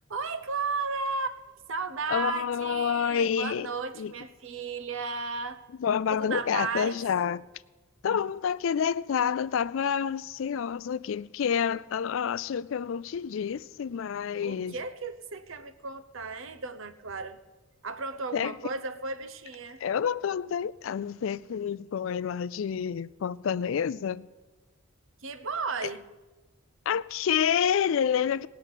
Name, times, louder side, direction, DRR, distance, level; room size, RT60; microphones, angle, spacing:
voice 1, 0.1-1.4 1.7-5.6 6.1-7.0 14.4-17.4 17.8-19.8 25.2-26.0, right 4 dB, 65° right, 0.8 m, -34 dB
voice 2, 2.1-3.7 4.0-4.1 5.8-7.5 8.0-14.8 18.3-18.6 19.8-24.3 25.8-25.9 26.9-28.5, left 7 dB, 65° left, 0.3 m, -28 dB
18.5 x 6.2 x 8.2 m
head